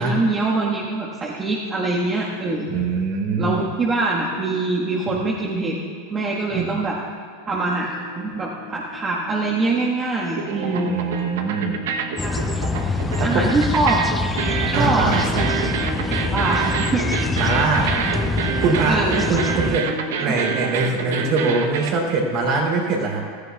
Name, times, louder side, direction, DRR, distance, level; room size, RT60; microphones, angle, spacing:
voice 1, 0.0-2.7 3.4-5.8 6.1-7.0 7.5-10.9 12.2-12.5 12.9-14.0 14.7-15.1 16.1-17.1 18.9-19.3, right 3 dB, 25° right, -4 dB, 1.4 m, -23 dB
voice 2, 2.7-3.6 5.1-5.2 6.5-6.7 10.9-11.8 13.2-13.5 14.7-15.5 17.4-17.9 18.6-19.0 19.3-19.9 20.2-23.2, right 3 dB, 50° right, -1 dB, 3.2 m, -22 dB
sound 1, 7.8-10.0 10.3-21.9, right 6 dB, 70° right, 0.9 m, -28 dB
sound 2, 12.2-19.8, left 3 dB, 10° left, 0.6 m, -25 dB
16.0 x 14.0 x 2.3 m, 2.2 s
hypercardioid pair, 90°, 0 cm